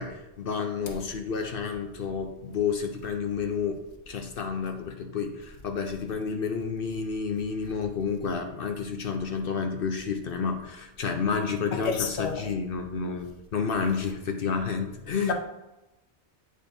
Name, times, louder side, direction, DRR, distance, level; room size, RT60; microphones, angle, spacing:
voice 1, 0.0-3.8 4.1-15.3, left 5 dB, 60° left, 0.8 m, -30 dB
voice 2, 11.7-12.4 15.3-15.4, left 5 dB, 80° left, 1.1 m, -29 dB
8.8 x 4.9 x 2.6 m
omnidirectional pair, 1.1 m